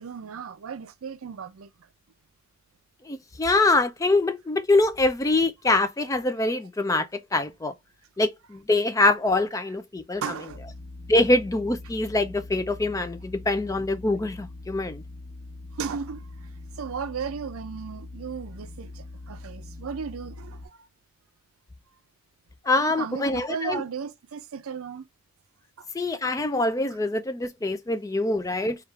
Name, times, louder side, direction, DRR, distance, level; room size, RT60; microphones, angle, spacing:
voice 1, 0.0-1.9 10.2-10.6 15.7-16.2 16.8-20.9 22.8-25.0 25.8-25.9, right 6 dB, 75° right, 0.5 m, -35 dB
voice 2, 3.1-7.7 8.2-10.2 11.1-15.0 22.7-23.8 25.9-28.8, left 2 dB, 15° left, 0.3 m, -24 dB
sound 1, 10.5-20.7, left 2 dB, 25° right, 1.4 m, -42 dB
3.4 x 2.4 x 4.4 m
head